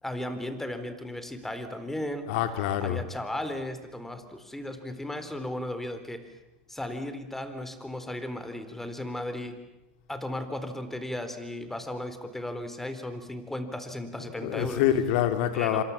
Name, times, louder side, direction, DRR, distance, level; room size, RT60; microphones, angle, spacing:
voice 1, 0.0-2.3 2.8-6.2 6.7-9.6 10.1-14.8 15.5-15.8, left 1 dB, 5° left, 9 dB, 4.0 m, -35 dB
voice 2, 2.3-3.0 14.2-15.8, left 11 dB, 70° left, 8 dB, 3.2 m, -26 dB
27.5 x 26.5 x 7.3 m, 0.97 s
hypercardioid pair, 100°, 5 cm